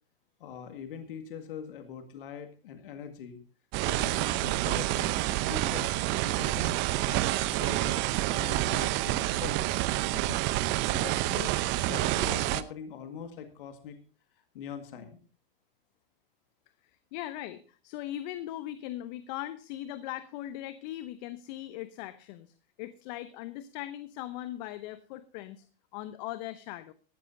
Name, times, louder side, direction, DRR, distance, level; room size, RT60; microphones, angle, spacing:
voice 1, 0.4-3.4 3.9-5.9 6.2-8.0 8.3-9.6 10.1-10.4 10.9-14.0 14.5-15.2, left 8 dB, 65° left, 7 dB, 2.0 m, -42 dB
sound 1, 3.7-12.6, right 17 dB, 40° right, 0.8 m, -28 dB
voice 2, 16.8-25.6 25.9-26.9, left 13 dB, 50° left, 13 dB, 0.9 m, -39 dB
17.0 x 13.5 x 2.7 m, 0.38 s
hypercardioid pair, 110°, 29 cm